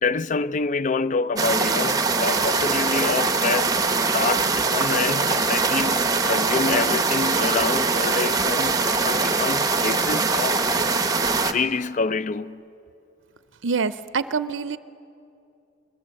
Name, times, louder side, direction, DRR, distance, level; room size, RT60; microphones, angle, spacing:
voice 1, 0.0-3.8 4.1-10.9 11.5-12.6, left 4 dB, 40° left, 0.4 m, -27 dB
sound 1, 1.4-11.5, right 4 dB, 20° right, 0.9 m, -22 dB
voice 2, 13.6-14.8, right 5 dB, 65° right, 0.5 m, -25 dB
22.0 x 21.0 x 7.6 m
head